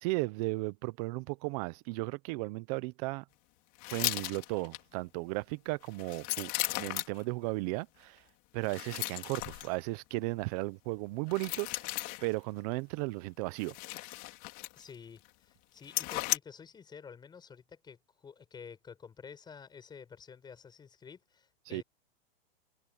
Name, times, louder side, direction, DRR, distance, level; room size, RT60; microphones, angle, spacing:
voice 1, 0.0-3.2 3.9-6.5 6.8-8.2 8.5-11.7 12.2-13.7 21.7-21.8, right 24 dB, 40° right, 0.9 m, -35 dB
sound 1, 3.8-4.8 5.8-7.2 8.6-9.7 11.3-12.3 13.6-15.0 15.3-15.4 15.8-16.4, left 24 dB, 40° left, 4.1 m, -36 dB
voice 2, 14.8-21.8, left 6 dB, 15° left, 6.9 m, -50 dB
supercardioid pair, 150°, 29 cm